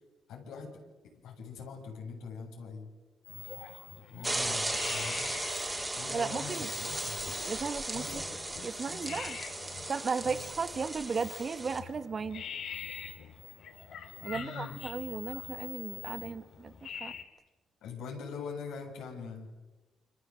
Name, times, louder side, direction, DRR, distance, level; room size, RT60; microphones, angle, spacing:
voice 1, 0.3-0.8 1.2-2.9 4.1-5.3 5.9-7.2 7.9-8.2 8.8-9.2 10.2-10.4 14.3-14.8 17.8-19.5, left 5 dB, 85° left, 0 dB, 7.6 m, -43 dB
sound 1, 3.2-17.2, left 7 dB, 70° left, 4.1 m, -45 dB
sound 2, 4.2-11.8, right 2 dB, 15° right, 4.2 m, -36 dB
voice 2, 6.1-6.7 7.5-8.2 8.6-9.4 9.9-12.4 14.2-17.1, right 5 dB, 40° right, 12 dB, 1.8 m, -35 dB
29.5 x 25.0 x 8.0 m, 1.2 s
cardioid pair, 90°, 0 cm